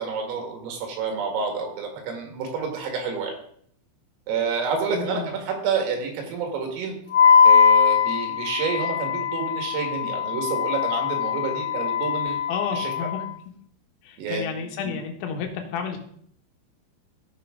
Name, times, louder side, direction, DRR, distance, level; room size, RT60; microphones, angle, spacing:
voice 1, 0.0-3.4 4.3-7.0 7.5-12.4 12.7-12.9 14.2-15.0, right 5 dB, 85° right, 2 dB, 4.7 m, -29 dB
voice 2, 4.9-5.4 12.5-13.2 14.0-16.0, left 7 dB, 85° left, 3 dB, 4.0 m, -31 dB
Wind instrument woodwind instrument, 7.1-13.3, left 7 dB, 65° left, 3.8 m, -21 dB
14.5 x 6.9 x 3.8 m, 0.64 s
omnidirectional pair, 5.8 m